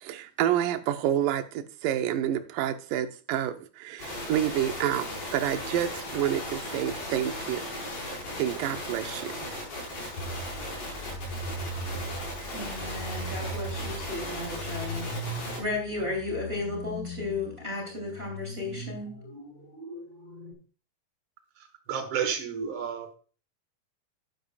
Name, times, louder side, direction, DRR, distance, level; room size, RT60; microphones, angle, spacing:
voice 1, 0.0-7.6 8.4-9.3, right 11 dB, 80° right, 2.4 m, -29 dB
sound 1, 4.0-15.6, left 1 dB, 70° left, 6.8 m, -37 dB
sound 2, 10.2-20.5, right 1 dB, 50° left, 5.7 m, -39 dB
voice 2, 12.5-15.1 15.6-19.1, left 2 dB, 20° right, 3.1 m, -34 dB
voice 3, 21.9-23.2, right 7 dB, 45° right, 1.9 m, -31 dB
12.0 x 10.5 x 2.4 m
omnidirectional pair, 3.9 m